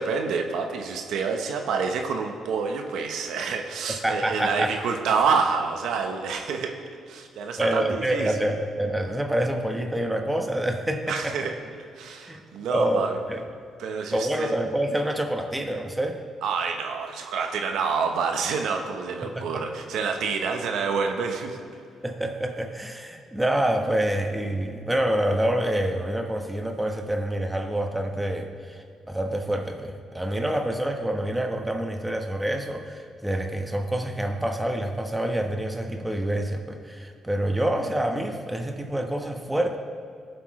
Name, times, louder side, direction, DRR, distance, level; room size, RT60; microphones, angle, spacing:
voice 1, 0.0-6.7 7.1-8.5 11.1-11.5 12.0-13.2 13.8-14.6 16.4-21.6, right 5 dB, 80° right, 4 dB, 1.0 m, -27 dB
voice 2, 4.0-4.7 7.6-11.4 12.3-12.4 12.7-13.4 14.1-16.2 19.2-19.6 22.0-39.8, right 1 dB, 10° right, 3 dB, 1.2 m, -27 dB
18.0 x 7.8 x 3.2 m, 2.3 s
cardioid pair, 90°, 0 cm